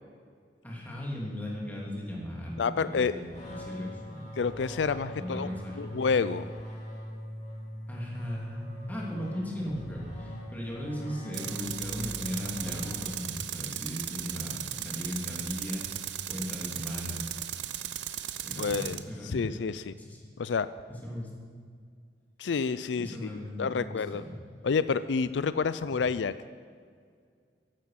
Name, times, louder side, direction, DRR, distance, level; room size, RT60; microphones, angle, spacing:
voice 1, 0.6-4.3 5.1-5.9 7.9-15.9 16.3-17.3 18.4-19.6 20.0-20.2 20.9-21.3 23.0-24.4, equal, 10° left, -3 dB, 2.9 m, -37 dB
voice 2, 2.6-3.1 4.4-5.5 5.8-6.5 18.6-19.0 19.3-19.9 20.4-20.7 22.4-23.3 23.6-24.2 24.6-26.3, left 5 dB, 90° left, 15 dB, 0.4 m, -28 dB
sound 1, 3.3-13.5, equal, 40° left, 3.0 m, -41 dB
Tools, 11.3-19.0, right 11 dB, 85° right, 0.7 m, -37 dB
15.0 x 11.5 x 5.9 m, 2.1 s
head